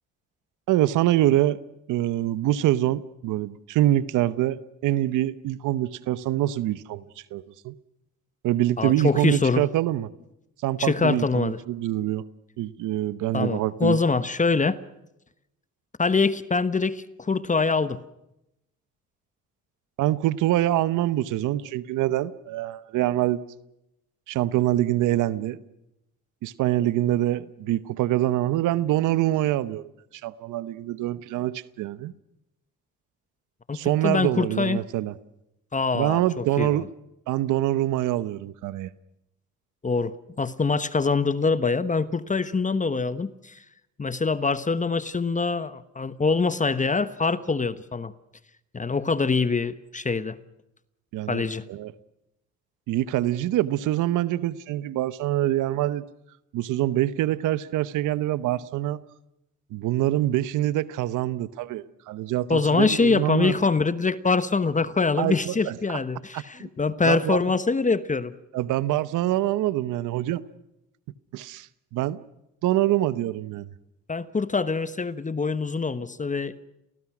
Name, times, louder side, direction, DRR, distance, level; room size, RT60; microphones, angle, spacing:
voice 1, 0.7-1.6 1.9-7.7 8.4-10.1 10.6-12.2 12.6-14.0 20.0-23.4 24.3-25.6 26.4-29.9 30.2-32.1 33.7-35.1 35.9-36.9 37.3-38.9 51.1-51.4 51.7-51.9 52.9-56.1 56.5-59.0 59.7-63.5 65.2-65.7 66.3-66.7 67.0-67.4 68.5-70.4 71.3-72.2 72.6-73.7, right 14 dB, 90° right, 16 dB, 1.0 m, -25 dB
voice 2, 8.8-9.6 10.8-11.6 13.3-14.8 16.0-18.0 33.7-34.9 35.7-36.9 39.8-43.6 44.0-48.1 48.7-50.4 51.3-51.7 62.5-68.3 74.1-76.5, left 4 dB, 25° left, 14 dB, 1.2 m, -24 dB
28.5 x 19.0 x 6.1 m, 0.86 s
cardioid pair, 90°, 30 cm